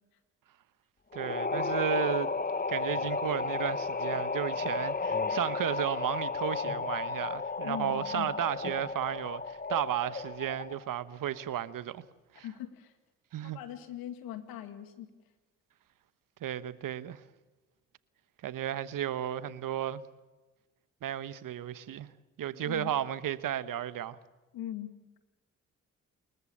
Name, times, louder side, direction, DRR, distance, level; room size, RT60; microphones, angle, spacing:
sound 1, 1.1-10.9, left 4 dB, 25° left, 1.1 m, -33 dB
voice 1, 1.1-2.3 2.7-12.0 12.3-12.4 13.3-13.6 16.4-17.2 18.4-20.0 21.0-22.1 22.4-24.2, right 11 dB, 65° right, 1.2 m, -33 dB
voice 2, 7.6-8.3 12.4-12.9 13.4-15.1 22.5-22.9 24.5-24.9, left 11 dB, 80° left, 2.3 m, -41 dB
28.5 x 14.0 x 8.6 m
hypercardioid pair, 50°, 35 cm